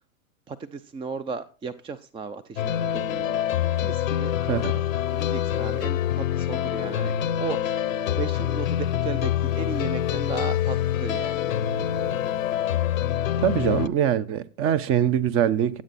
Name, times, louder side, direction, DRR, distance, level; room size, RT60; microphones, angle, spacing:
voice 1, 0.5-3.3 3.8-4.3 5.1-6.0 6.4-7.8 8.2-12.1, right 5 dB, 15° right, 0.6 m, -35 dB
sound 1, 2.6-13.9, left 11 dB, 75° left, 0.9 m, -26 dB
voice 2, 4.4-4.8 13.4-15.8, right 10 dB, 35° right, 1.0 m, -23 dB
17.0 x 8.2 x 4.2 m
hypercardioid pair, 100°, 40 cm